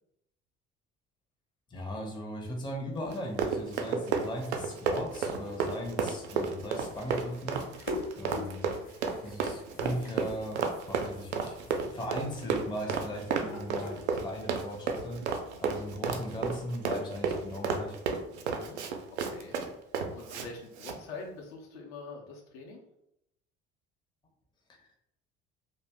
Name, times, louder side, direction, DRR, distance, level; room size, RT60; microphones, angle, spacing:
voice 1, 1.7-7.7 8.1-8.7 9.2-15.2 15.6-18.0 24.8-24.9, equal, 15° left, 1 dB, 0.6 m, -38 dB
Run, 3.1-20.5 20.8-21.0, right 5 dB, 75° right, 0.5 m, -32 dB
sound 1, 5.2-14.6, left 3 dB, 45° left, 1.0 m, -46 dB
voice 2, 19.1-19.6 20.1-22.8, left 3 dB, 60° left, 0 dB, 0.7 m, -45 dB
2.5 x 2.1 x 3.4 m, 0.80 s
figure-of-eight pair, 60°, 35 cm